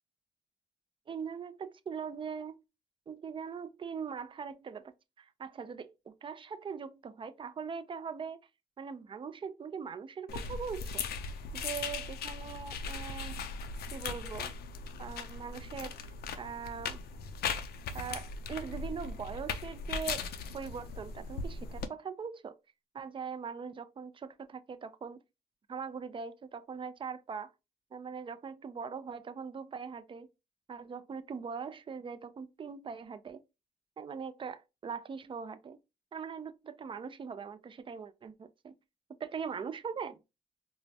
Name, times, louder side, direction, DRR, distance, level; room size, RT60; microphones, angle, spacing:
voice 1, 1.1-2.6 3.1-4.9 5.2-8.4 8.8-11.1 11.5-13.4 13.9-14.5 15.0-15.9 16.4-17.0 17.9-20.3 20.5-22.6 22.9-25.2 25.7-27.5 27.9-30.3 30.7-33.4 34.0-35.8 36.1-38.7 39.2-40.2, right 6 dB, 35° right, 0.4 m, -41 dB
sound 1, 10.3-21.9, left 5 dB, 90° left, 0.5 m, -39 dB
4.6 x 2.0 x 2.6 m
cardioid pair, 110°, 16 cm